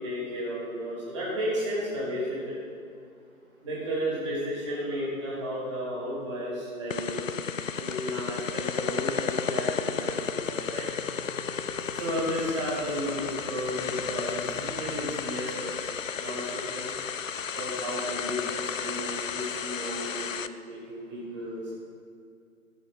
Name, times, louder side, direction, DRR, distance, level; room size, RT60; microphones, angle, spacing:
voice 1, 0.0-2.6 3.6-7.3 7.7-10.9 11.9-15.9 16.1-16.9 17.5-21.7, equal, 20° right, -7 dB, 3.0 m, -33 dB
sound 1, 6.9-20.5, left 6 dB, 60° left, 0.5 m, -33 dB
sound 2, 9.9-16.0, right 3 dB, 85° right, 1.3 m, -46 dB
15.0 x 6.2 x 5.3 m, 2.3 s
figure-of-eight pair, 165°, 44 cm